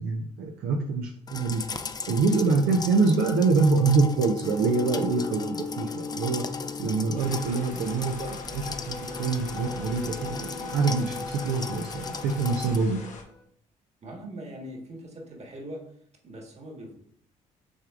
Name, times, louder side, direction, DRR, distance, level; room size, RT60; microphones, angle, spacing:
voice 1, 0.0-1.6 2.1-6.4 6.8-13.0, right 4 dB, 75° right, 0 dB, 0.6 m, -25 dB
sound 1, 1.3-12.8, left 5 dB, 25° left, 0.4 m, -37 dB
sound 2, 4.4-13.4, left 3 dB, 65° left, 1.4 m, -40 dB
sound 3, 7.2-13.2, left 3 dB, 50° left, 1.0 m, -44 dB
voice 2, 14.0-15.9 16.2-17.0, right 1 dB, 40° right, 0 dB, 1.5 m, -41 dB
6.2 x 3.5 x 2.5 m, 0.66 s
hypercardioid pair, 55°, 16 cm